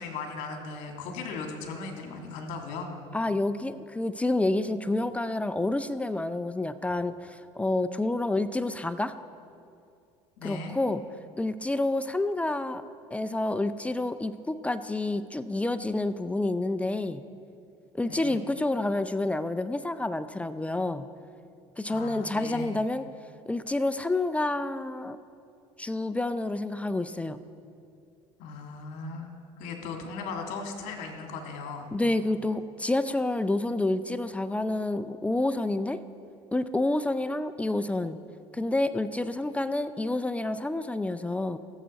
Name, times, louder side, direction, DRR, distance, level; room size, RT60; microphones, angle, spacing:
voice 1, 0.0-2.9 10.4-10.8 18.0-18.4 21.9-22.8 28.4-29.3 29.6-31.9, left 4 dB, 70° left, 3 dB, 1.7 m, -37 dB
voice 2, 3.1-9.1 10.4-11.0 11.4-12.8 13.1-17.2 17.9-21.1 21.8-23.0 23.5-25.2 25.8-27.4 31.9-36.0 36.5-38.2 38.5-41.6, left 2 dB, 10° left, 12 dB, 0.4 m, -28 dB
16.0 x 7.5 x 4.0 m, 2.4 s
supercardioid pair, 90°, 13 cm